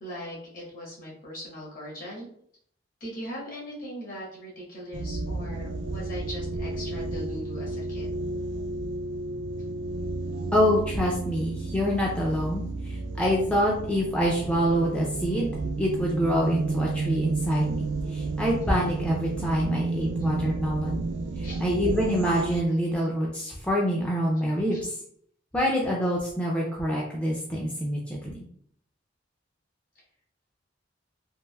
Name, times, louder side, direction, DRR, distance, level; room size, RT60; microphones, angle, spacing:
voice 1, 0.0-2.3 3.0-8.1 21.4-21.6 24.7-24.8, equal, 50° left, -4 dB, 1.2 m, -40 dB
sound 1, 4.9-22.6, right 3 dB, 70° right, 0.3 m, -32 dB
voice 2, 10.5-21.0 21.4-24.9 25.5-28.4, equal, 5° left, -4 dB, 0.4 m, -26 dB
3.3 x 2.4 x 2.2 m, 0.65 s
head